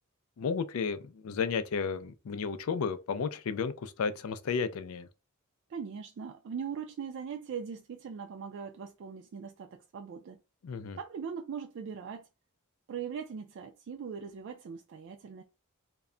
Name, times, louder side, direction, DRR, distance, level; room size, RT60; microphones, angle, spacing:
voice 1, 0.4-5.1 10.6-11.0, left 5 dB, 70° left, 0.4 m, -33 dB
voice 2, 5.7-10.4 11.0-12.3 12.9-15.4, right 6 dB, 60° right, 0.3 m, -40 dB
2.2 x 2.1 x 3.6 m
head